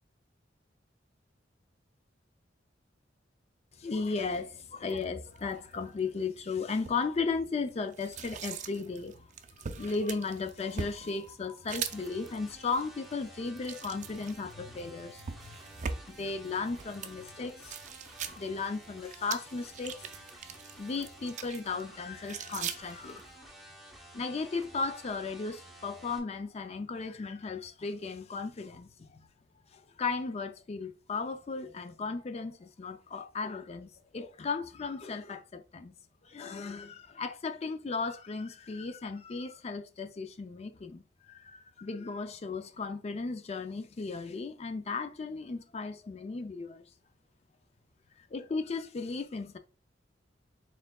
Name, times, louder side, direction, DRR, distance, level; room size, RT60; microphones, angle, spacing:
voice 1, 3.8-9.3 9.6-15.6 16.1-17.8 18.3-20.1 20.8-23.5 24.1-29.3 29.7-36.0 36.2-46.8 48.2-49.6, left 4 dB, 35° left, 0.4 m, -36 dB
sound 1, 4.3-23.4, right 6 dB, 40° right, 0.4 m, -44 dB
sound 2, 11.9-26.2, right 1 dB, ahead, 0.8 m, -52 dB
4.4 x 3.7 x 2.3 m
head